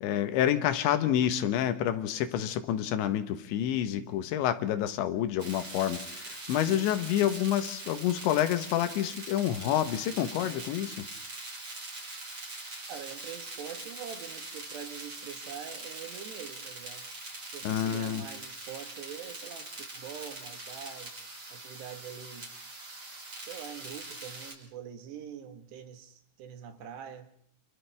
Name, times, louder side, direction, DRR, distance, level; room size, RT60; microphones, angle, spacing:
voice 1, 0.0-11.1 17.7-18.2, left 11 dB, 85° left, 3.6 m, -28 dB
sound 1, 5.4-24.5, right 2 dB, 30° right, 6.3 m, -43 dB
voice 2, 12.9-17.1 17.5-21.1 21.5-22.5 23.4-27.3, right 8 dB, 70° right, 3.6 m, -44 dB
29.5 x 29.0 x 3.5 m
omnidirectional pair, 5.1 m